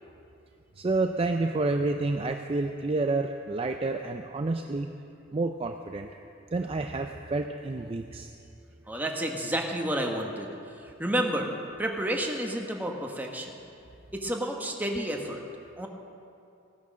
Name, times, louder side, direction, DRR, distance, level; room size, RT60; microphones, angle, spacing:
voice 1, 0.8-4.9 5.3-6.1 6.5-8.3, right 2 dB, 30° right, 5 dB, 0.4 m, -29 dB
voice 2, 8.9-11.5 11.8-13.6 14.1-15.4 15.8-15.9, right 1 dB, 10° right, 1 dB, 1.3 m, -30 dB
16.5 x 9.5 x 6.3 m, 2.6 s
head